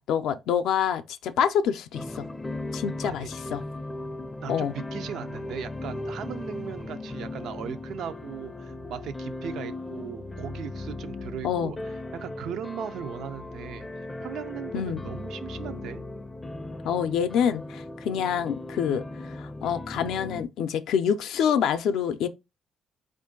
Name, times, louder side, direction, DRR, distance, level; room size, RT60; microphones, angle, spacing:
voice 1, 0.0-2.2 2.7-3.6 4.5-4.7 11.4-11.7 14.7-15.0 16.8-19.0 19.4-22.3, left 8 dB, 85° left, 0.4 m, -26 dB
sound 1, 1.9-20.4, left 2 dB, 20° left, 0.4 m, -37 dB
voice 2, 4.4-16.0, right 9 dB, 80° right, 0.4 m, -38 dB
4.4 x 2.5 x 3.7 m
cardioid pair, 90°, 0 cm